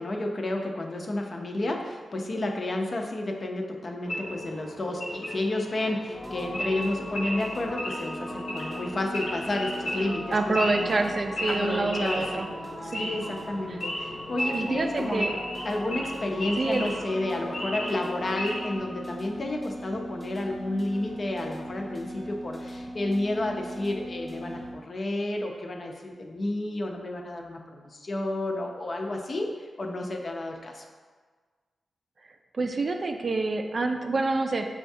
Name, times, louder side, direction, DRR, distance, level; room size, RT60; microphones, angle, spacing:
voice 1, 0.0-10.9 11.5-12.5 12.8-15.3 15.6-30.8, left 1 dB, 50° left, 2 dB, 0.5 m, -31 dB
Wild animals / Idling, 4.0-18.8, equal, 85° left, 0.9 m, -35 dB
sound 1, 6.1-24.7, equal, 10° left, 0.7 m, -39 dB
voice 2, 10.3-12.5 12.9-13.1 14.5-15.3 16.6-16.9 32.5-34.7, right 3 dB, 50° right, 4 dB, 0.4 m, -27 dB
6.3 x 2.3 x 2.6 m, 1.5 s
cardioid pair, 55°, 0 cm